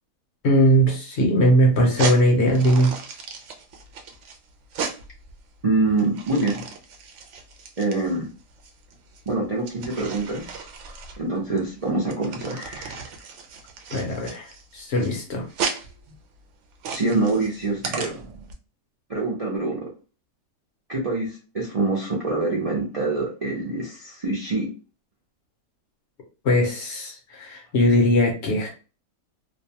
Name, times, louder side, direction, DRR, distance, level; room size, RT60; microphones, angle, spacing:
voice 1, 0.4-3.0 13.9-15.4 26.4-28.7, equal, 55° left, 0 dB, 0.9 m, -20 dB
sound 1, 1.8-18.5, right 5 dB, 65° right, 0.8 m, -35 dB
voice 2, 5.6-6.6 7.8-8.3 9.3-10.7 11.2-13.0 16.9-18.2 19.1-19.8 20.9-24.7, right 2 dB, 45° right, -5 dB, 0.5 m, -25 dB
2.6 x 2.1 x 2.7 m, 0.34 s
omnidirectional pair, 1.5 m